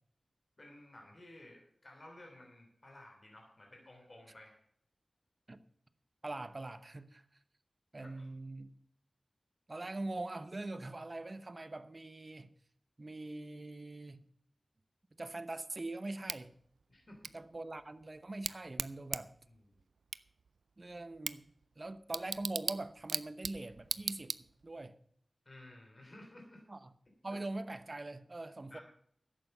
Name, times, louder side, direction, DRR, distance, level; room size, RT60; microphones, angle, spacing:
voice 1, 0.6-4.6 8.0-8.2 16.9-17.3 19.5-19.8 25.4-26.6 28.7-28.8, left 1 dB, 45° left, 3.2 m, -55 dB
voice 2, 6.2-7.2 7.9-8.7 9.7-12.5 13.0-14.2 15.2-16.5 17.3-19.3 20.8-24.3 24.6-24.9 26.7-26.9 27.2-28.8, right 2 dB, 40° right, 0.9 m, -43 dB
Bicycle / Tick, 16.3-24.8, right 4 dB, 90° right, 0.4 m, -42 dB
11.5 x 8.2 x 6.7 m
wide cardioid pair, 55°, 0 cm